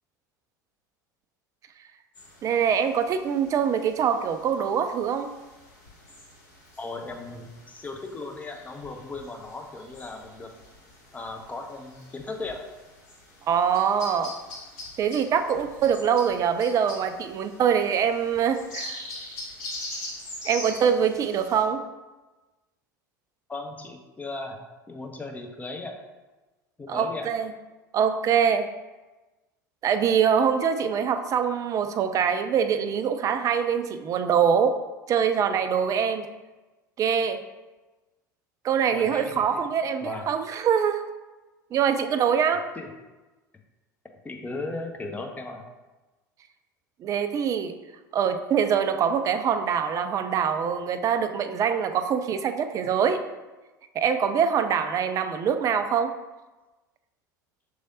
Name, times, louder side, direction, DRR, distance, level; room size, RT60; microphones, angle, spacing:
sound 1, 2.1-21.6, left 1 dB, 60° left, 1.4 m, -43 dB
voice 1, 2.4-5.3 13.5-14.3 15.0-19.0 20.4-21.8 26.9-27.5 27.9-28.7 29.8-34.8 35.1-36.3 37.0-37.4 38.6-41.0 41.7-42.6 47.0-47.7 48.1-53.2 53.9-56.1, right 7 dB, 30° right, 9 dB, 0.4 m, -24 dB
voice 2, 6.8-10.5 11.1-12.6 23.5-24.6 24.9-26.0 26.8-27.3 38.9-39.6 40.0-40.3 42.8-42.9 44.2-45.7, left 3 dB, 15° left, 3 dB, 0.7 m, -37 dB
6.2 x 3.2 x 2.7 m, 1.2 s
figure-of-eight pair, 75°, 10 cm